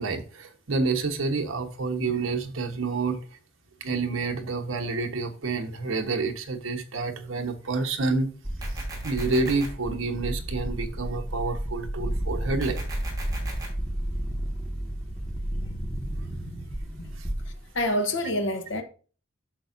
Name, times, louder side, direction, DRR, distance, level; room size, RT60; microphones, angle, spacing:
voice 1, 0.0-3.2 3.8-8.3 9.0-12.9 17.2-17.3, right 3 dB, 80° right, 1.2 m, -28 dB
sound 1, 8.4-17.8, right 1 dB, 5° left, 1.7 m, -32 dB
sound 2, 8.6-9.7 12.6-13.7, right 3 dB, 20° right, 2.7 m, -40 dB
voice 2, 17.7-18.8, left 1 dB, 65° left, 1.1 m, -26 dB
8.8 x 6.7 x 2.6 m
head